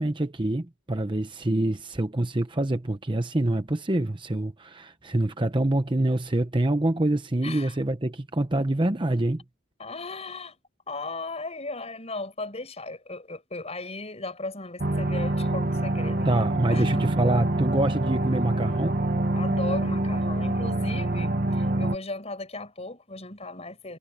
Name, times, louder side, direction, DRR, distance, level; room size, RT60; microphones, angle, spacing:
voice 1, 0.0-9.4 16.2-19.0, right 1 dB, 25° right, 0.8 m, -26 dB
voice 2, 7.4-7.8 9.8-10.6 10.9-17.1 19.4-24.0, left 2 dB, 30° left, 7.2 m, -36 dB
sound 1, 14.8-22.0, right 1 dB, 45° right, 1.4 m, -26 dB
head